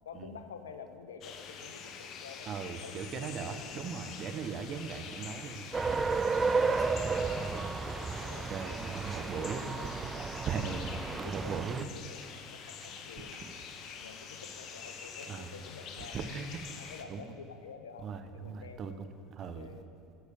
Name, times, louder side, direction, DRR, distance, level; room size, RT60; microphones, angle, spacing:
voice 1, 0.1-4.1 7.2-10.5 11.1-13.4 14.0-16.5 16.8-18.1 18.3-19.0 19.5-19.9, left 6 dB, 85° left, 9 dB, 0.6 m, -50 dB
sound 1, 1.2-17.0, left 6 dB, 50° left, 0.9 m, -46 dB
voice 2, 2.5-5.7 6.4-6.7 8.3-9.7 10.3-11.9 13.4-13.5 15.3-15.5 16.1-16.5 17.1-17.3 18.0-19.1 19.4-19.7, right 6 dB, 45° right, 9 dB, 0.8 m, -39 dB
sound 2, 5.7-11.8, right 4 dB, 20° right, 0.4 m, -32 dB
10.5 x 6.4 x 6.9 m, 2.6 s
hypercardioid pair, 70°, 0 cm